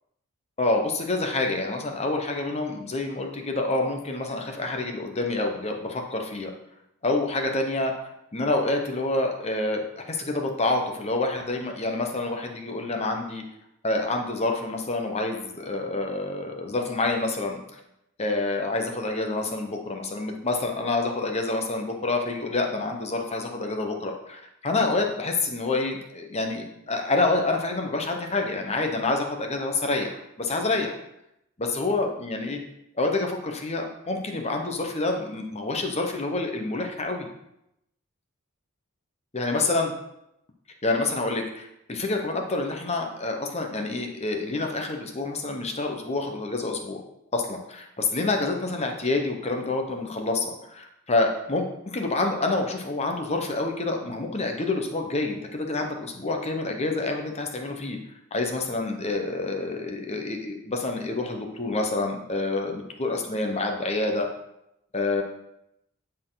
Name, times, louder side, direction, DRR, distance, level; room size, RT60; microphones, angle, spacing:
voice 1, 0.6-6.5 7.0-7.9 8.3-13.4 13.8-17.8 18.2-30.9 31.6-32.6 32.9-37.3 39.3-39.9 40.8-47.0 47.3-58.0 58.3-64.3 64.9-65.2, left 2 dB, 30° left, 3 dB, 1.0 m, -27 dB
12.0 x 4.4 x 3.9 m, 0.83 s
head